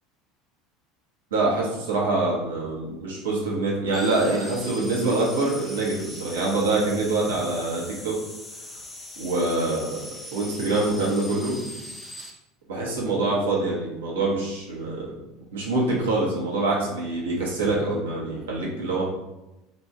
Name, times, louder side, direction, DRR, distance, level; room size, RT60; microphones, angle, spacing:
voice 1, 1.3-8.1 9.2-11.5 12.7-15.1 15.5-19.1, right 2 dB, 75° right, -3 dB, 1.2 m, -25 dB
sound 1, 3.9-12.3, left 1 dB, 5° left, 0.9 m, -41 dB
5.2 x 2.7 x 3.4 m, 0.97 s
figure-of-eight pair, 70°, 0 cm